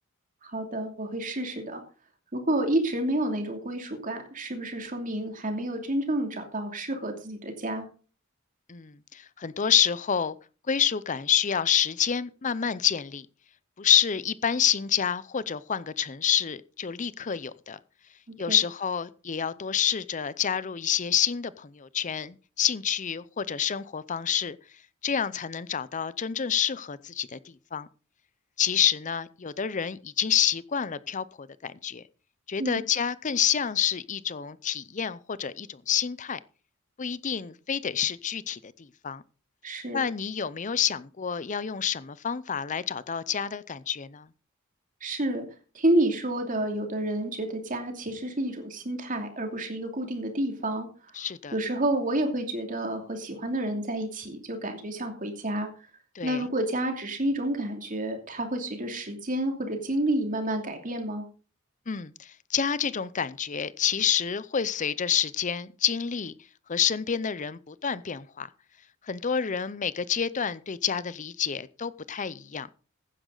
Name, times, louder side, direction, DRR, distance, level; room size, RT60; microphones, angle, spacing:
voice 1, 0.4-1.8 2.3-7.9 18.5-18.6 32.6-32.8 39.6-40.0 45.0-45.4 45.7-50.9 51.5-55.7 56.2-61.2, right 1 dB, 40° right, 2.8 m, -29 dB
voice 2, 8.7-10.4 10.7-13.3 13.8-17.8 18.4-24.6 25.0-27.9 28.6-32.0 32.5-36.4 37.0-39.2 39.9-44.3 51.1-51.5 56.1-56.5 61.9-66.3 66.7-68.5 69.1-72.7, left 8 dB, 35° left, 0.6 m, -28 dB
15.5 x 10.0 x 3.9 m
head